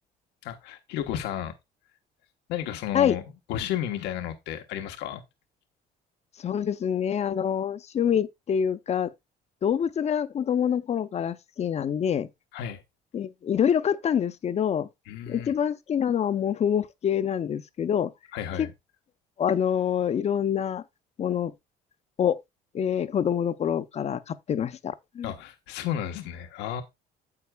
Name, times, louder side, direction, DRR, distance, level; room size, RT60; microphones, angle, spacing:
voice 1, 0.4-1.5 2.5-3.2 3.5-5.2 12.5-12.8 15.1-15.5 18.3-18.7 25.2-26.8, left 10 dB, 90° left, 1.1 m, -32 dB
voice 2, 6.4-9.1 9.6-12.3 13.1-14.9 15.3-18.1 19.4-20.8 21.2-21.5 22.2-22.4 22.7-25.3, left 8 dB, 40° left, 0.7 m, -26 dB
9.5 x 7.7 x 2.3 m
cardioid pair, 110°, 17 cm